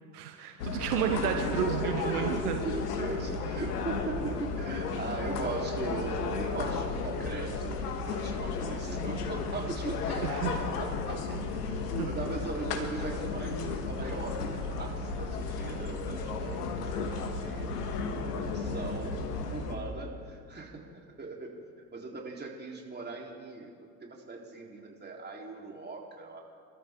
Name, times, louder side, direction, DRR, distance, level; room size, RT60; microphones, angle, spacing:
voice 1, 0.1-2.6 10.2-10.5 12.0-12.1, right 9 dB, 80° right, 5 dB, 1.3 m, -31 dB
sound 1, 0.6-19.8, left 4 dB, 80° left, 1.6 m, -34 dB
voice 2, 1.6-11.4 11.7-11.8 12.1-17.7 18.3-19.2 19.5-21.5 21.9-23.7 24.0-26.4, right 3 dB, 20° right, -1 dB, 3.9 m, -39 dB
27.5 x 13.5 x 3.8 m, 2.2 s
hypercardioid pair, 65°, 46 cm